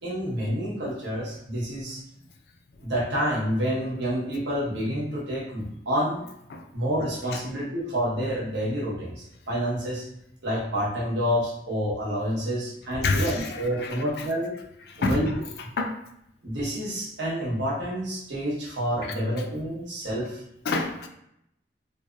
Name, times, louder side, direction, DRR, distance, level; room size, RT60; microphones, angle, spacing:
voice 1, 0.0-2.0 2.8-6.3 6.7-10.1 10.4-14.5 15.0-15.3 16.4-20.4, equal, 85° right, -4 dB, 0.9 m, -28 dB
voice 2, 13.0-14.3 14.8-16.0 19.0-19.1 20.2-20.3 20.6-21.1, left 3 dB, 60° left, 5 dB, 0.3 m, -29 dB
2.6 x 2.1 x 2.2 m, 0.77 s
head